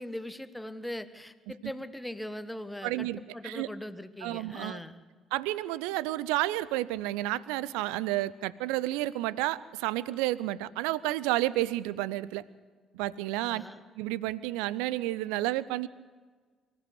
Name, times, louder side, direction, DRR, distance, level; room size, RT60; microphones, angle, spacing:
voice 1, 0.0-5.0 13.4-13.8, left 1 dB, 5° left, 11 dB, 1.3 m, -40 dB
voice 2, 2.8-3.7 4.2-4.8 5.3-12.4 12.9-13.6 14.0-15.9, right 16 dB, 70° right, 20 dB, 0.5 m, -31 dB
24.5 x 14.0 x 8.0 m, 1.5 s
figure-of-eight pair, 50°, 0 cm